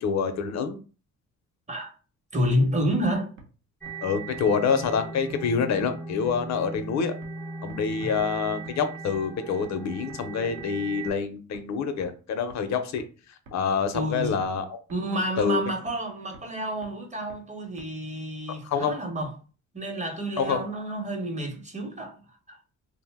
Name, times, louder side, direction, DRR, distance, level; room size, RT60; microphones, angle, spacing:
voice 1, 0.0-0.8 4.0-7.1 7.6-13.0 13.5-14.8 15.4-15.6 18.6-19.0 20.4-20.6, left 6 dB, 65° left, 0.5 m, -26 dB
voice 2, 2.3-3.3 8.0-8.1 13.9-14.4 14.9-19.3 19.7-22.2 22.5-22.6, equal, 25° right, 0.8 m, -29 dB
sound 1, 2.9-3.0 3.4-3.5 3.9-4.0 4.3-4.4 4.8-4.9 5.3-5.4 5.8-5.9 6.3-6.4 6.7-6.8 7.2-7.3 7.7-7.8 8.2-8.3 8.7-8.8 9.1-9.2 9.6-9.7 10.1-10.2 10.6-10.7 11.1-11.2 11.5-11.6 12.0-12.1 12.5-12.6 13.0-13.1 13.5-13.6 13.9-14.0 14.4-14.5 14.9-15.0 15.4-15.5 15.9-16.0 16.3-16.4 16.8-16.9 17.3-17.4 17.8-17.9, right 2 dB, 70° right, 0.8 m, -47 dB
sound 2, 3.8-11.1, right 3 dB, 5° left, 0.5 m, -38 dB
2.6 x 2.0 x 3.4 m
cardioid pair, 90°, 30 cm